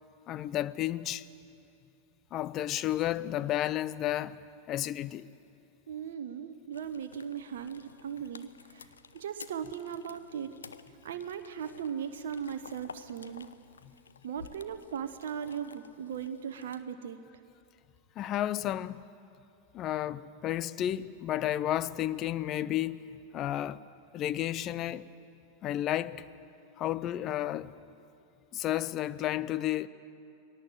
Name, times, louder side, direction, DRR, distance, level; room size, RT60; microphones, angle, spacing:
voice 1, 0.3-1.3 2.3-4.4 4.7-5.3 18.2-19.1 19.7-23.0 23.3-23.8 24.1-25.1 25.6-26.3 26.8-27.8 28.5-29.9, left 13 dB, 35° left, 0.6 m, -32 dB
voice 2, 5.9-8.9 9.1-10.6 11.0-13.5 14.2-17.2, right 8 dB, 60° right, 0.9 m, -38 dB
sound 1, 6.7-16.8, left 6 dB, 70° left, 0.7 m, -53 dB
21.5 x 18.0 x 7.8 m
figure-of-eight pair, 90°, 0 cm